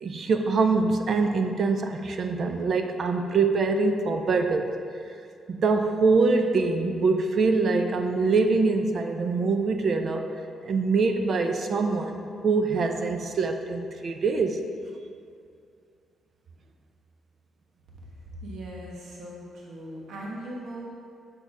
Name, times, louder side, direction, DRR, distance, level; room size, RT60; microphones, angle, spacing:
voice 1, 0.0-4.7 5.5-10.3 10.6-14.6, right 4 dB, 50° right, 6 dB, 0.5 m, -24 dB
voice 2, 18.2-20.9, right 1 dB, 75° right, -3 dB, 1.2 m, -39 dB
6.8 x 6.4 x 4.8 m, 2.3 s
cardioid pair, 135°, 0 cm